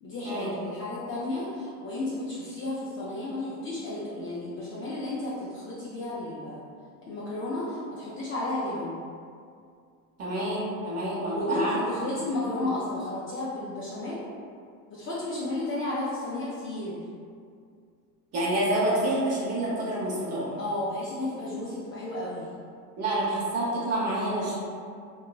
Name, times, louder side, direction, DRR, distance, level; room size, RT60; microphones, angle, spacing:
voice 1, 0.0-6.6 7.0-9.0 11.2-14.2 14.9-17.0 20.6-22.5, left 2 dB, 30° left, -8 dB, 0.4 m, -33 dB
voice 2, 10.2-11.8 12.1-12.5 18.3-20.5 23.0-24.6, right 1 dB, 30° right, -6 dB, 0.8 m, -28 dB
2.8 x 2.3 x 2.2 m, 2.3 s
supercardioid pair, 100°, 48 cm